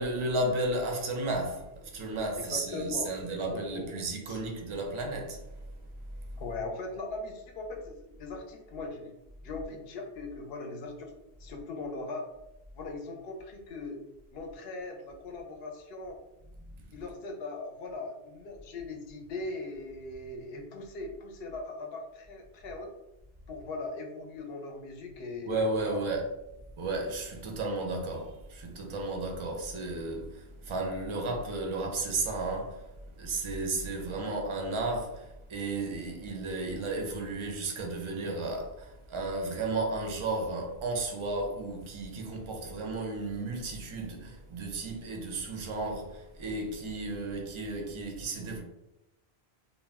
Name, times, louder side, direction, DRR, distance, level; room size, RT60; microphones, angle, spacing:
voice 1, 0.0-5.7 16.8-16.9 25.4-26.3 26.8-32.9 33.2-48.6, right 2 dB, 45° right, 0.4 m, -33 dB
voice 2, 2.3-4.4 6.4-9.1 9.4-11.1 11.4-12.2 12.7-14.0 14.3-16.2 16.9-22.9 23.5-26.0 29.5-29.6, left 3 dB, 70° left, 0.8 m, -40 dB
2.4 x 2.1 x 3.3 m
omnidirectional pair, 1.1 m